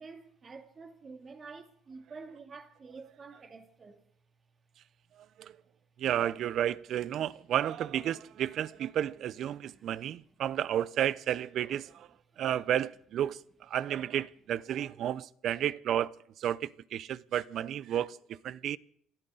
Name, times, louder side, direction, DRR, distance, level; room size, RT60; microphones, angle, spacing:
voice 1, 0.0-4.0 7.4-7.5 9.6-9.9 10.2-10.3 12.3-12.5, right 4 dB, 35° right, 2.6 m, -49 dB
voice 2, 6.0-12.1 12.4-13.4 13.7-16.1 16.4-18.2 18.4-18.8, right 10 dB, 60° right, 0.6 m, -32 dB
27.5 x 13.5 x 3.9 m
cardioid pair, 105°, 0 cm